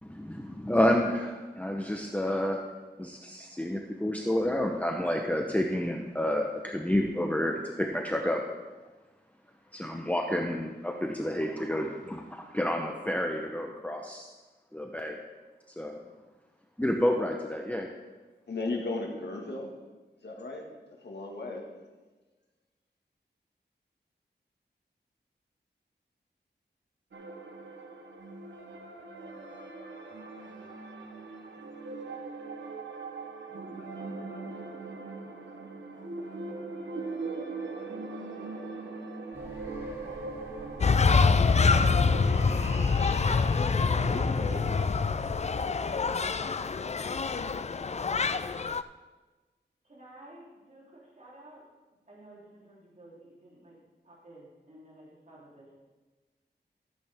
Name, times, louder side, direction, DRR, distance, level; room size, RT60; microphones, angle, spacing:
voice 1, 0.0-2.6 3.0-8.4 9.7-14.3 14.7-15.2 15.8-16.0 16.8-17.9, left 1 dB, 10° left, 1 dB, 0.8 m, -29 dB
voice 2, 18.5-19.7 20.2-20.7 21.0-21.7 43.9-44.9, left 2 dB, 70° left, 0 dB, 1.8 m, -36 dB
sound 1, 27.1-44.9, right 3 dB, 90° right, 1.0 m, -40 dB
sound 2, 39.3-45.5, equal, 15° right, 2.9 m, -45 dB
sound 3, 40.8-48.8, left 4 dB, 40° left, 0.4 m, -25 dB
voice 3, 49.9-51.6 52.1-53.8 54.0-55.8, right 1 dB, 45° right, -6 dB, 3.3 m, -52 dB
14.0 x 8.5 x 3.5 m, 1.2 s
wide cardioid pair, 85°, 18 cm